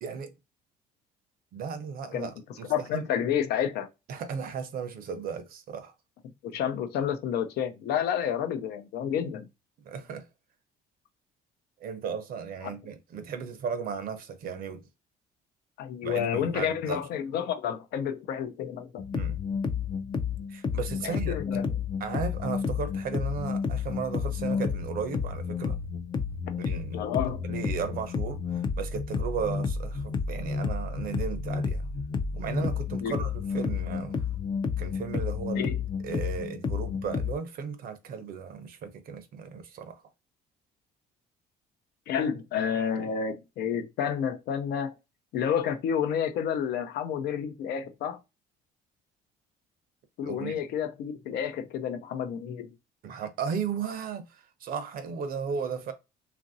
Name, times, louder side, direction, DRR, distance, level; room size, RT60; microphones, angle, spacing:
voice 1, 0.0-0.3 1.5-3.0 4.1-5.9 9.8-10.3 11.8-14.9 16.0-17.0 19.1-19.4 20.5-21.6 22.0-25.8 26.6-27.0 27.5-31.9 32.3-34.3 34.8-35.7 36.0-40.0 50.2-50.6 53.0-55.9, right 6 dB, 60° right, 0.6 m, -35 dB
voice 2, 2.7-3.9 6.4-9.5 15.8-19.0 21.0-21.7 26.9-27.5 33.0-33.1 35.6-35.8 42.1-44.9 45.3-48.2 50.2-52.7, left 8 dB, 75° left, 0.6 m, -30 dB
sound 1, 19.0-37.3, left 5 dB, 25° left, 0.4 m, -31 dB
3.0 x 2.5 x 2.6 m
cardioid pair, 110°, 17 cm